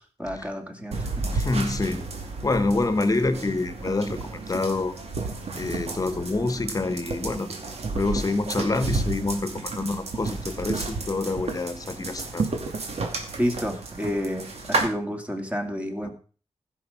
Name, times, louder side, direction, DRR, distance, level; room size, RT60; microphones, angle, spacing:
voice 1, 0.0-1.3 13.4-16.1, equal, 15° right, 4 dB, 2.3 m, -30 dB
sound 1, 0.9-14.9, right 3 dB, 80° right, 2.6 m, -32 dB
voice 2, 1.3-2.0 2.4-4.9 5.6-7.5 7.9-12.4 16.0-16.1, left 3 dB, 35° left, 12 dB, 1.3 m, -27 dB
15.5 x 6.6 x 5.6 m, 0.40 s
wide cardioid pair, 115°, 11 cm